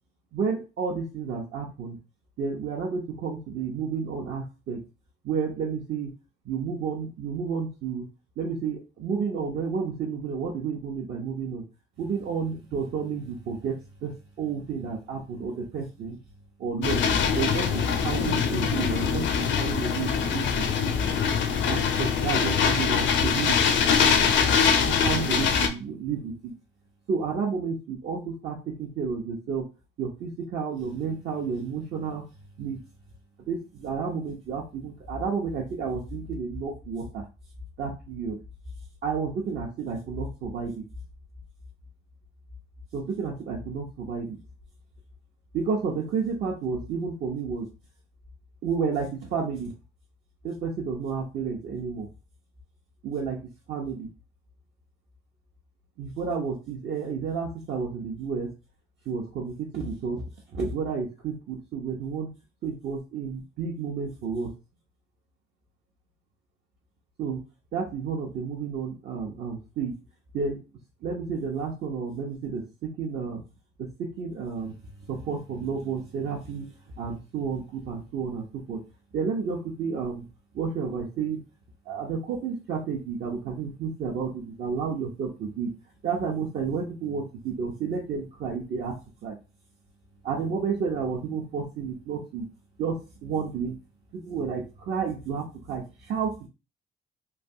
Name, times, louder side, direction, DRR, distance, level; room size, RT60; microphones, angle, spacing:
voice 1, 0.3-2.0 2.4-4.8 5.2-6.1 6.4-8.1 8.4-11.6 12.0-16.2 16.6-17.0 17.3-20.9 21.7-23.6 24.0-24.2 24.8-26.5 27.1-29.7 30.0-32.2 32.6-32.8 33.5-37.2 37.8-38.4 39.0-40.9 42.9-44.4 45.5-47.7 48.6-49.7 50.4-52.1 53.0-53.4 53.7-54.1 56.0-58.5 59.1-60.2 60.5-62.3 62.6-64.5 67.2-67.4 67.7-70.0 70.3-70.6 71.0-73.4 73.8-74.8 75.1-78.8 79.1-80.3 80.5-81.4 81.9-85.7 86.0-89.0 89.2-89.4 90.2-92.5 92.8-93.8 94.1-96.5, right 5 dB, 60° right, -2 dB, 0.7 m, -31 dB
sound 1, 16.8-25.7, left 6 dB, 70° left, 0.5 m, -23 dB
3.2 x 2.3 x 2.7 m, 0.31 s
cardioid pair, 90°, 20 cm